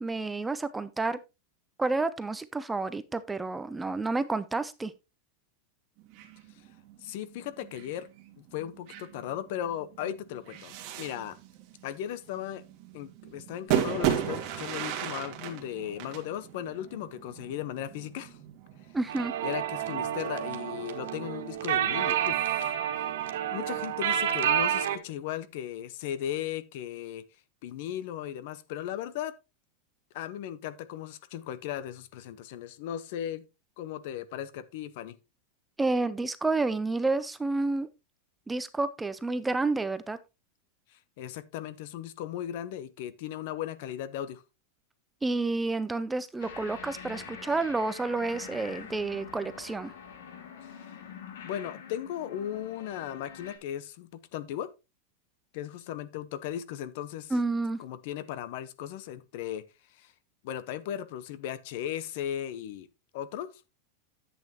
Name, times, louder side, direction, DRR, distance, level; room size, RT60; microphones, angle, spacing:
voice 1, 0.0-1.2 1.8-4.9 18.9-19.3 35.8-37.9 38.5-40.2 45.2-49.9 57.3-57.8, right 3 dB, 5° right, 0.4 m, -30 dB
sound 1, 6.0-24.1, right 10 dB, 40° right, 2.1 m, -37 dB
voice 2, 7.0-8.1 8.4-11.4 11.8-12.6 12.9-18.4 19.4-22.7 23.5-27.2 27.6-29.3 30.1-33.4 33.8-35.2 40.9-44.4 51.4-54.7 55.5-57.3 57.8-59.6 59.9-60.1 60.4-62.9 63.1-63.5, left 11 dB, 50° left, 0.9 m, -37 dB
sound 2, 19.1-25.0, right 10 dB, 75° right, 1.7 m, -29 dB
sound 3, 46.4-53.6, left 7 dB, 85° left, 2.7 m, -45 dB
11.0 x 8.3 x 2.9 m
supercardioid pair, 165°, 0 cm